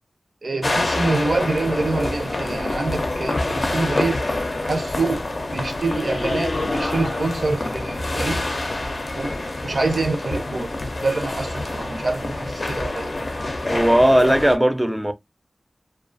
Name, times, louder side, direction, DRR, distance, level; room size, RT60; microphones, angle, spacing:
voice 1, 0.4-4.3 4.6-5.2 5.5-8.4 9.2-9.3 9.6-10.7 11.0-13.3, right 3 dB, 80° right, 0.5 m, -25 dB
sound 1, 0.6-14.6, left 2 dB, 65° left, 0.4 m, -26 dB
voice 2, 13.6-15.1, right 1 dB, 15° right, 0.4 m, -17 dB
2.3 x 2.3 x 2.5 m
wide cardioid pair, 60°, 0 cm